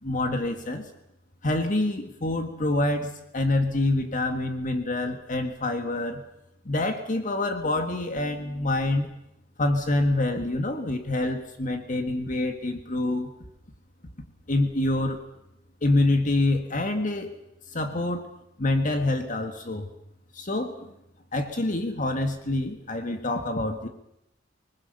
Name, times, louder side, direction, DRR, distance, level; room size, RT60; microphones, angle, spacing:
voice 1, 0.0-0.9 1.4-6.2 6.7-9.1 9.6-13.3 14.5-15.2 15.8-17.3 17.7-18.3 18.6-19.9 20.3-20.9 21.3-23.9, left 2 dB, 45° left, 6 dB, 1.8 m, -26 dB
25.5 x 20.5 x 6.9 m, 0.81 s
head